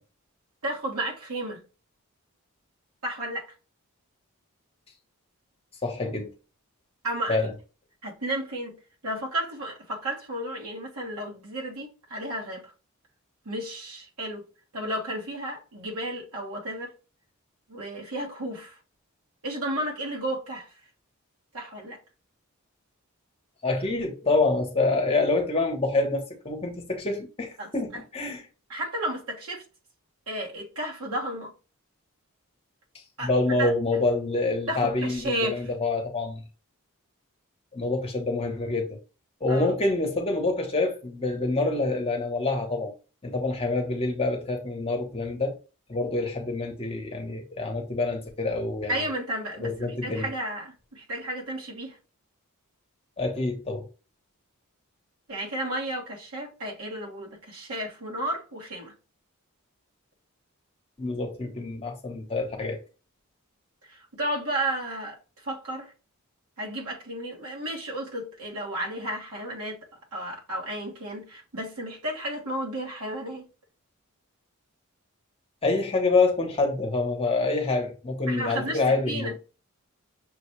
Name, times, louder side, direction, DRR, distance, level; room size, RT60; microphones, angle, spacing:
voice 1, 0.6-1.6 3.0-3.5 7.0-7.4 8.0-12.7 13.4-14.5 14.7-16.9 17.7-18.8 19.4-20.7 21.5-22.0 27.6-27.7 28.7-29.6 30.3-31.5 33.2-33.3 33.6-33.7 34.7-35.6 39.5-39.7 48.9-52.0 55.3-58.9 63.9-65.9 66.6-69.8 70.1-73.5 78.3-79.3, right 1 dB, 85° right, 1.5 m, -33 dB
voice 2, 5.8-6.3 7.3-7.5 23.6-28.4 33.2-36.4 37.7-39.0 39.4-42.9 43.2-45.6 45.9-49.1 49.6-50.3 53.2-53.9 61.0-62.8 75.6-79.3, left 3 dB, 25° left, 0.9 m, -26 dB
6.1 x 2.3 x 3.0 m
head